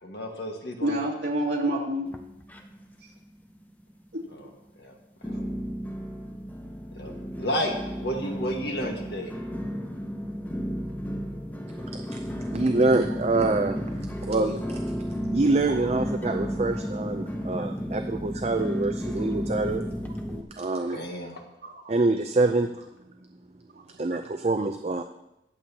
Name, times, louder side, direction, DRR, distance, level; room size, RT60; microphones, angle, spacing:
voice 1, 0.0-1.0 4.3-4.5 4.8-4.9 5.3-5.5 6.9-7.7 8.0-9.3 20.9-21.4, equal, 60° left, 1 dB, 1.6 m, -32 dB
voice 2, 0.8-2.1 4.1-4.2 15.7-15.9 20.3-20.4 21.6-21.8, right 1 dB, 70° right, -3 dB, 2.4 m, -28 dB
sound 1, 2.1-3.0 3.3-3.9 4.4-4.5 5.2-20.4, equal, 10° left, 0.6 m, -33 dB
voice 3, 12.5-13.8 14.2-14.9 15.3-19.8 20.6-21.0 21.9-22.9 24.0-25.0, right 2 dB, 35° right, 6 dB, 0.5 m, -25 dB
22.0 x 7.6 x 2.9 m, 0.90 s
head